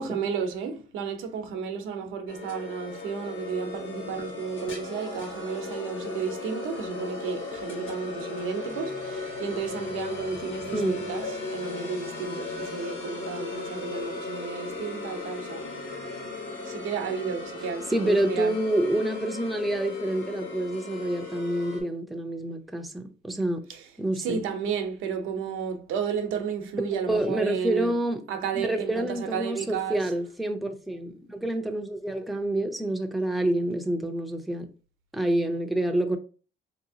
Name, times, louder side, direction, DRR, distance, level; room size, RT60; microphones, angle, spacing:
voice 1, 0.0-15.6 16.6-18.5 23.7-23.9 24.1-28.0 28.3-30.0, right 6 dB, 85° right, 0.7 m, -32 dB
sound 1, 2.3-21.8, left 3 dB, 75° left, 1.3 m, -36 dB
voice 2, 17.9-23.6 24.0-24.4 27.1-28.2 28.5-34.7 35.1-36.2, right 1 dB, ahead, 0.5 m, -27 dB
3.3 x 2.8 x 2.7 m
cardioid pair, 90°, 20 cm